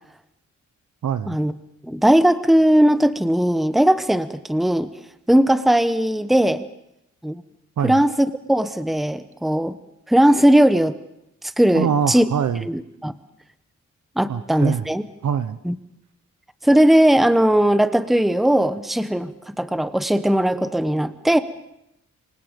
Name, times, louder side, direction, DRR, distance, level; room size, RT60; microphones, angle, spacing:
voice 1, 1.0-1.4 7.8-8.0 11.7-12.6 14.3-14.9 15.2-15.6, right 8 dB, 75° right, 13 dB, 1.0 m, -23 dB
voice 2, 1.8-4.9 5.3-6.6 7.2-7.4 7.8-9.8 10.1-10.9 11.6-12.2 12.6-13.1 14.2-15.0 15.6-15.7 16.6-21.4, right 1 dB, ahead, 12 dB, 1.0 m, -18 dB
27.0 x 24.5 x 5.3 m, 0.81 s
wide cardioid pair, 115°, 30 cm